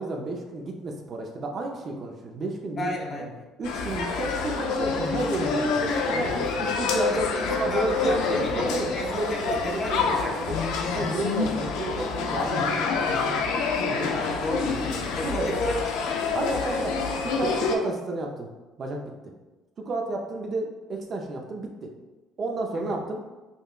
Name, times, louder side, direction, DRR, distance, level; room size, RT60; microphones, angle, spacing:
voice 1, 0.0-3.1 3.6-6.3 6.6-10.6 10.9-13.5 13.9-14.2 15.2-15.6 16.3-17.0 17.2-18.5 18.8-19.0 19.9-21.9 22.4-23.2, right 2 dB, 45° right, 1 dB, 0.5 m, -31 dB
voice 2, 2.8-3.4 6.1-6.3 7.1-10.6 14.1-15.8 22.7-23.0, left 2 dB, 40° left, 0 dB, 0.8 m, -33 dB
sound 1, 3.6-17.8, left 4 dB, 85° left, 0.4 m, -27 dB
5.3 x 2.1 x 2.4 m, 1.2 s
cardioid pair, 100°, 0 cm